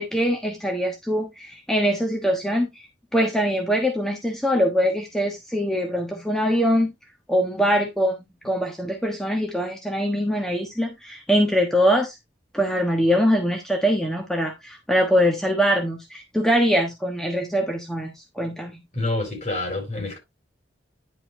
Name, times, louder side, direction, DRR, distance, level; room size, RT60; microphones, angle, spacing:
voice 1, 0.0-2.9 3.1-6.9 7.3-8.1 8.4-12.2 12.5-18.8, equal, 5° left, 1.3 m, -23 dB
voice 2, 18.9-20.2, left 2 dB, 40° left, 4.4 m, -27 dB
10.5 x 5.5 x 3.3 m
head